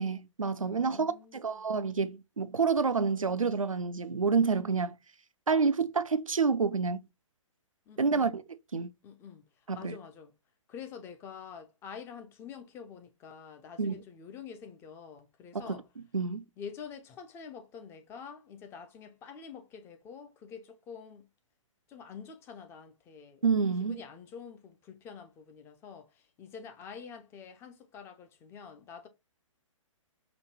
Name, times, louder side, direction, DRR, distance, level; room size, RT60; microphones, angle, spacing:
voice 1, 0.0-5.0 5.5-7.0 8.0-8.4 8.7-8.9 9.7-10.0 13.8-14.0 15.5-15.8 16.1-16.4 23.4-24.0, right 5 dB, 85° right, 0.5 m, -28 dB
voice 2, 0.7-1.6 7.9-8.4 9.0-9.4 9.7-10.3 10.7-15.8 16.6-21.2 21.9-23.4 23.8-29.1, left 6 dB, 15° left, 0.5 m, -47 dB
5.0 x 2.2 x 2.9 m
figure-of-eight pair, 125°, 17 cm